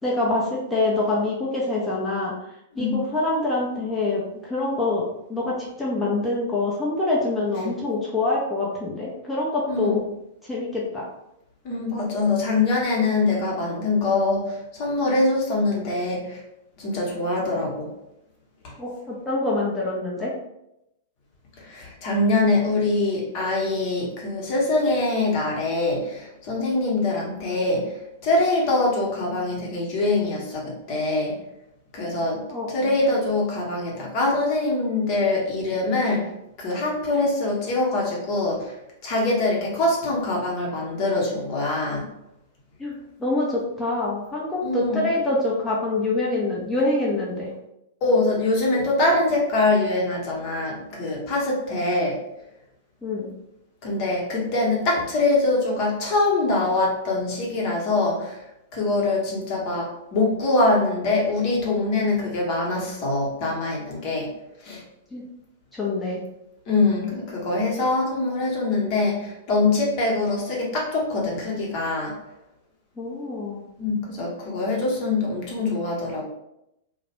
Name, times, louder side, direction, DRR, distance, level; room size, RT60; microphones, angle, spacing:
voice 1, 0.0-2.3 2.8-5.0 5.3-10.0 10.4-11.0 18.8-20.3 32.5-32.7 42.8-47.5 53.0-53.3 65.1-65.2 65.7-66.2 73.0-73.6, left 2 dB, 10° left, -6 dB, 0.6 m, -25 dB
voice 2, 9.7-10.0 11.6-16.4 16.8-17.9 18.6-18.7 21.6-31.4 31.9-36.3 36.6-38.8 39.0-42.1 44.6-45.1 48.0-52.2 53.8-58.4 58.7-64.3 64.6-64.8 66.7-72.2 73.8-76.2, left 2 dB, 45° left, -2 dB, 0.9 m, -24 dB
2.4 x 2.0 x 3.0 m, 0.85 s
hypercardioid pair, 110°, 0 cm